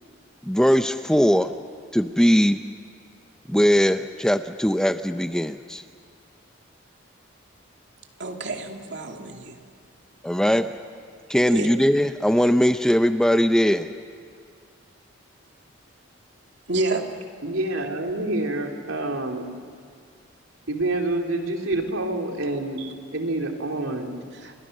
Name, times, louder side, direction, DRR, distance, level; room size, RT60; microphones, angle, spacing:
voice 1, 0.4-1.5 1.9-2.6 3.5-5.8 10.2-10.7 11.3-13.9, equal, 5° left, 9 dB, 0.6 m, -20 dB
voice 2, 8.2-9.6 11.5-11.7 16.7-17.1 22.8-22.9 24.3-24.5, right 2 dB, 60° right, 3 dB, 2.5 m, -29 dB
voice 3, 17.4-19.5 20.7-22.8 23.1-24.2, right 2 dB, 85° right, 2 dB, 3.2 m, -27 dB
30.0 x 24.0 x 6.7 m, 2.3 s
head